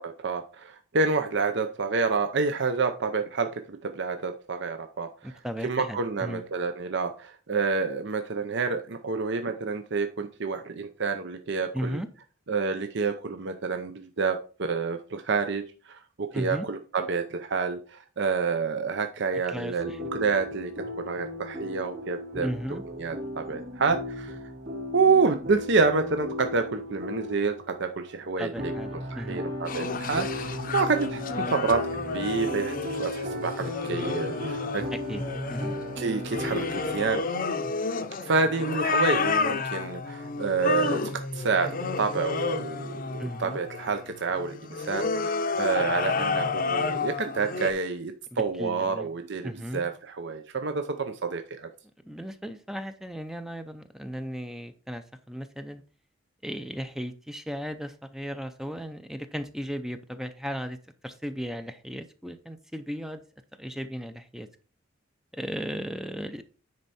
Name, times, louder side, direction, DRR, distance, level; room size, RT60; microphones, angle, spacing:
voice 1, 0.0-5.3 5.6-12.0 12.5-15.6 15.9-20.7 21.0-24.4 24.9-27.5 27.8-28.7 29.1-31.8 32.1-34.8 36.0-37.2 38.2-41.0 41.3-51.7, right 4 dB, 60° right, 0.7 m, -28 dB
voice 2, 5.2-6.4 11.7-12.1 16.3-16.7 19.5-20.0 22.4-22.8 28.4-29.4 34.9-35.8 43.2-43.6 48.3-49.1 49.4-49.9 52.0-55.8 56.4-60.8 61.0-63.2 63.6-64.5 65.3-66.4, equal, ahead, 0.5 m, -36 dB
sound 1, 19.8-37.2, left 1 dB, 45° right, 3.0 m, -36 dB
sound 2, 29.7-47.7, left 4 dB, 45° left, 0.7 m, -31 dB
9.6 x 4.5 x 4.2 m
head